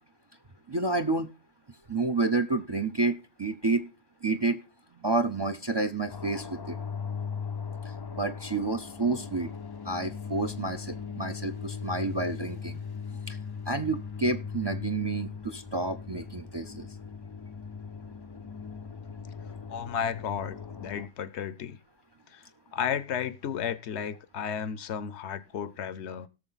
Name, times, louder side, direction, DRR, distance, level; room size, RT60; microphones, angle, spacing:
voice 1, 0.7-1.3 1.9-3.9 4.2-4.6 5.0-6.8 8.1-9.5 9.8-12.8 13.3-13.4 13.7-16.9, right 3 dB, 35° right, 0.4 m, -29 dB
sound 1, 6.1-21.1, left 6 dB, 35° left, 0.3 m, -39 dB
voice 2, 19.7-21.8 22.3-22.4 22.7-26.3, left 8 dB, 75° left, 1.0 m, -33 dB
17.5 x 6.6 x 4.0 m
omnidirectional pair, 1.1 m